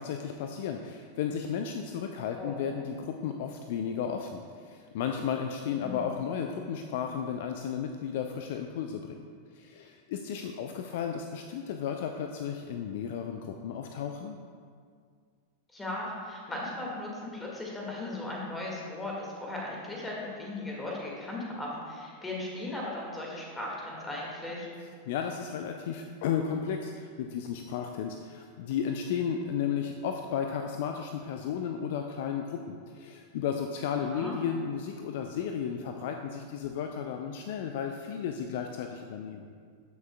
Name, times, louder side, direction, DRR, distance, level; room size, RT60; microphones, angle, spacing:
voice 1, 0.0-9.2 9.5-14.4 25.1-39.5, left 7 dB, 50° left, 5 dB, 0.4 m, -34 dB
voice 2, 15.7-24.7 34.1-34.3, left 2 dB, 10° left, -3 dB, 1.9 m, -37 dB
14.0 x 6.2 x 2.3 m, 2.1 s
figure-of-eight pair, 90°, 0 cm